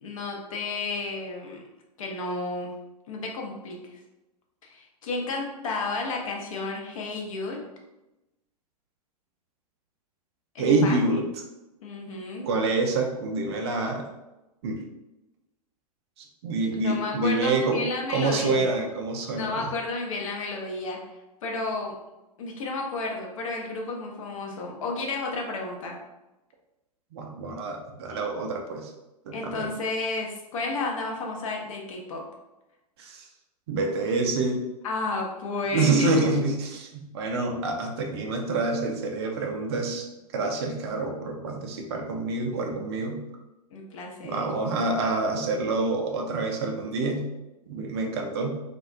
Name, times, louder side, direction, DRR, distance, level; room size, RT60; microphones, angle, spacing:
voice 1, 0.0-1.6 2.0-2.7 3.1-4.0 4.6-7.6 10.5-11.2 11.8-12.5 16.7-18.7 19.4-21.0 21.4-21.9 22.4-26.0 29.3-32.2 34.8-36.5 43.7-44.5, left 3 dB, 55° left, 0 dB, 0.6 m, -32 dB
voice 2, 10.6-11.2 12.4-14.0 14.6-14.8 16.4-19.7 27.1-28.9 29.3-29.7 33.0-33.3 33.7-34.6 35.7-40.1 40.3-43.2 44.2-47.3 47.7-48.6, right 3 dB, 40° right, 2 dB, 0.4 m, -27 dB
2.3 x 2.1 x 2.5 m, 0.98 s
figure-of-eight pair, 100°, 21 cm